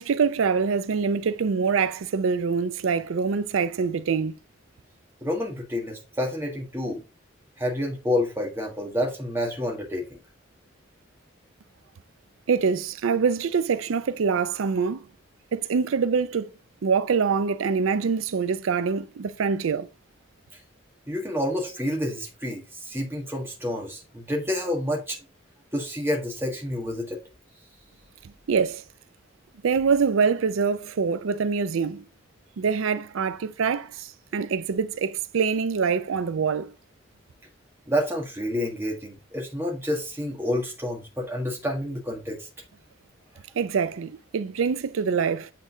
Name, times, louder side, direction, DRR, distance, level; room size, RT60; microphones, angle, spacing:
voice 1, 0.0-4.4 12.5-15.0 15.5-16.5 16.8-19.9 28.5-28.8 29.6-32.0 32.6-36.7 43.6-45.5, right 5 dB, 90° right, 0.4 m, -25 dB
voice 2, 5.2-7.0 7.6-10.2 21.1-25.2 25.7-27.2 37.9-42.5, left 1 dB, 10° right, 1.6 m, -29 dB
8.5 x 3.8 x 3.8 m
head